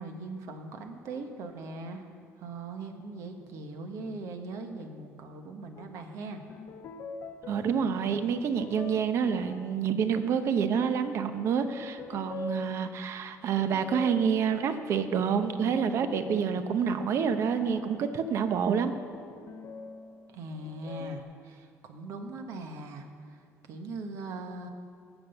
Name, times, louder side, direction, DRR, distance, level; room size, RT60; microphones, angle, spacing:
voice 1, 0.0-2.0 2.4-6.4 20.3-23.4 23.7-24.7, right 2 dB, 70° right, 5 dB, 1.4 m, -40 dB
sound 1, 5.8-6.0 6.5-11.1 11.5-21.2, left 4 dB, 50° left, 0.8 m, -44 dB
voice 2, 7.5-18.9, right 7 dB, 55° right, 9 dB, 0.8 m, -28 dB
17.5 x 6.3 x 6.8 m, 2.3 s
cardioid pair, 135°, 6 cm